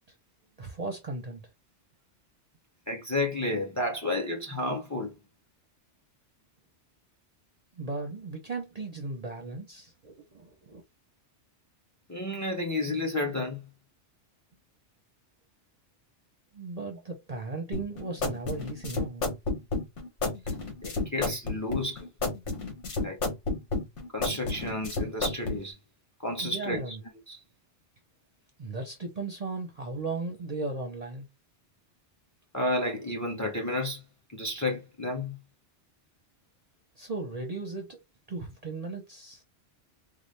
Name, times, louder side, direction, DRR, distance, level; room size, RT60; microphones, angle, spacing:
voice 1, 0.6-1.4 7.8-10.8 16.5-19.4 26.4-27.0 28.6-31.3 37.0-38.0 38.3-39.4, right 3 dB, 40° right, 0.7 m, -36 dB
voice 2, 2.9-5.1 12.1-13.6 20.8-22.1 23.0-23.2 24.1-25.8 26.2-26.8 27.3-27.4 32.5-34.0 34.3-35.4, left 1 dB, 15° left, 0.7 m, -31 dB
sound 1, 17.7-25.6, left 3 dB, 75° left, 1.3 m, -31 dB
4.1 x 2.0 x 3.2 m
omnidirectional pair, 1.2 m